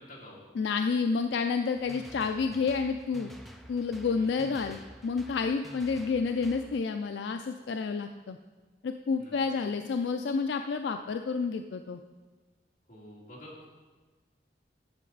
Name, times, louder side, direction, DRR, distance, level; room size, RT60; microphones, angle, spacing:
voice 1, 0.0-0.4 4.1-4.5 9.2-9.6 12.9-13.7, left 1 dB, 50° left, -4 dB, 2.2 m, -49 dB
voice 2, 0.6-3.3 3.7-8.4 8.8-12.0, left 5 dB, 80° left, 7 dB, 0.4 m, -30 dB
sound 1, 1.7-6.8, equal, ahead, 0.5 m, -49 dB
10.5 x 6.7 x 4.0 m, 1.3 s
head